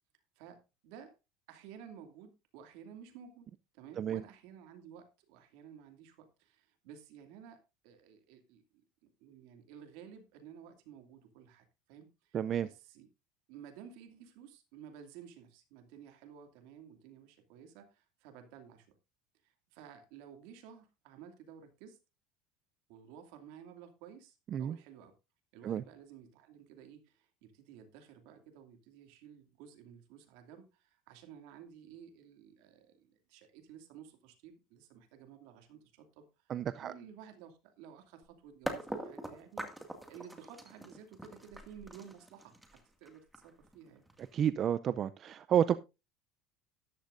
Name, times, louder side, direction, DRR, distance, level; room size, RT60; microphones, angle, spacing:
voice 1, 0.4-1.2 1.5-12.4 12.6-13.1 13.5-18.9 19.4-22.0 22.9-25.1 25.5-36.5 36.8-39.7 40.1-44.1, right 8 dB, 75° right, 2.5 m, -54 dB
voice 2, 12.3-12.7 24.5-24.8 25.6-25.8 36.5-36.9 44.3-45.7, right 9 dB, 40° right, 0.5 m, -30 dB
sound 1, 38.2-38.3 38.7-44.5, right 1 dB, 5° right, 2.1 m, -43 dB
13.0 x 11.5 x 2.6 m
supercardioid pair, 120°, 0 cm